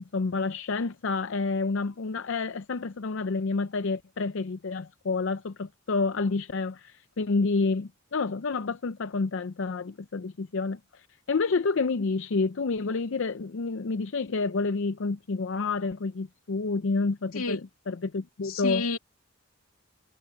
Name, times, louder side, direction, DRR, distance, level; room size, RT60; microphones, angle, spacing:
voice 1, 0.0-18.9, left 4 dB, 60° left, 0.5 m, -29 dB
voice 2, 18.4-19.0, left 3 dB, 85° left, 2.4 m, -30 dB
head